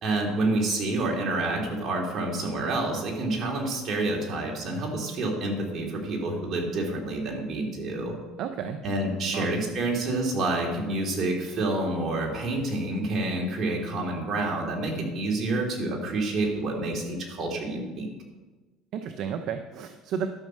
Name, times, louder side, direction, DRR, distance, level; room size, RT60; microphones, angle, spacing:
voice 1, 0.0-8.1 8.8-18.1, right 2 dB, 45° right, 0 dB, 3.2 m, -28 dB
voice 2, 8.4-8.8 9.3-9.5 18.9-20.3, right 7 dB, 60° right, 7 dB, 0.7 m, -32 dB
12.5 x 6.4 x 6.5 m, 1.3 s
supercardioid pair, 105°, 0 cm